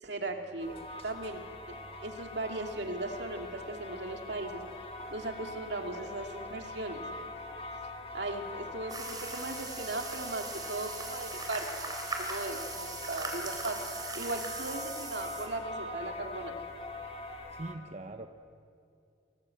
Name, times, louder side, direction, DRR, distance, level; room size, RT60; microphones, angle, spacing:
voice 1, 0.0-0.7 1.0-1.4 1.7-1.8 2.0-4.6 5.1-7.0 8.1-13.8 14.1-16.6, right 2 dB, 65° right, 3 dB, 2.6 m, -38 dB
sound 1, 0.6-17.8, left 1 dB, 35° left, 2.2 m, -44 dB
sound 2, 1.7-17.3, left 6 dB, 5° left, 3.0 m, -48 dB
sound 3, 8.9-15.5, right 3 dB, 20° right, 3.5 m, -40 dB
voice 2, 17.5-18.3, right 2 dB, 40° right, 6 dB, 0.9 m, -41 dB
28.5 x 19.0 x 7.8 m, 2.5 s
head